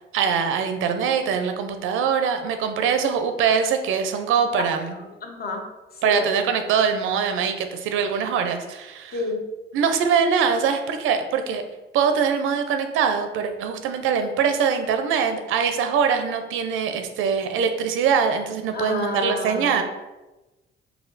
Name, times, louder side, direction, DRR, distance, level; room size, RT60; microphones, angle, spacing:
voice 1, 0.1-4.9 6.0-9.2 9.7-11.6 11.9-19.8, right 6 dB, 90° right, 7 dB, 0.5 m, -23 dB
voice 2, 5.2-5.6 6.0-6.3 9.1-9.4 18.7-19.8, left 2 dB, 50° left, 2 dB, 0.8 m, -29 dB
4.1 x 2.2 x 3.9 m, 1.1 s
cardioid pair, 90°, 20 cm